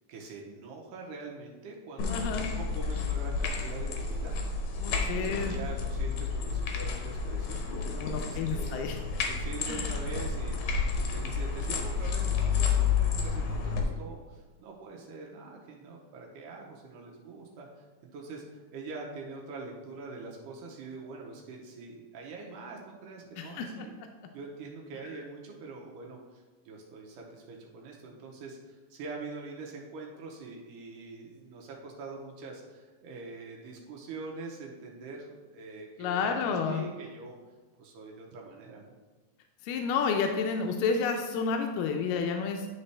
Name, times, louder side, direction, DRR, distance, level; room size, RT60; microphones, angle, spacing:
voice 1, 0.1-7.6 8.2-17.9 18.1-24.0 24.3-36.4 36.7-37.4 37.8-38.9, right 3 dB, 85° right, -1 dB, 2.3 m, -44 dB
sound 1, 2.0-13.8, left 5 dB, 70° left, 1.7 m, -30 dB
voice 2, 2.1-2.5 4.8-5.5 8.0-9.0 9.7-9.9 23.4-23.9 36.0-36.8 39.6-42.7, left 5 dB, 85° left, 4 dB, 2.2 m, -30 dB
10.0 x 4.1 x 3.3 m, 1.3 s
omnidirectional pair, 3.7 m